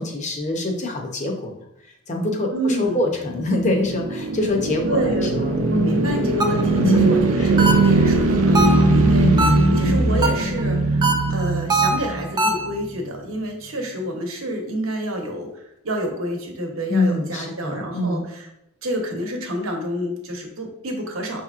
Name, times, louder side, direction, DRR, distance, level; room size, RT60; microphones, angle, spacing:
voice 1, 0.0-1.5 2.1-6.0 6.8-7.1 7.4-7.5 9.2-9.5 16.9-18.3, left 2 dB, 35° left, 2 dB, 0.7 m, -24 dB
voice 2, 2.5-3.0 4.9-5.4 5.7-11.0 11.3-18.5 18.8-21.4, right 1 dB, 70° right, 2 dB, 0.9 m, -28 dB
sound 1, 3.4-12.7, right 2 dB, 85° right, 0.6 m, -20 dB
sound 2, 6.4-6.8 7.6-8.1 8.5-9.0 9.4-9.8 10.2-10.6 11.0-12.7, right 3 dB, 20° right, 0.4 m, -22 dB
6.3 x 2.9 x 2.4 m, 0.81 s
head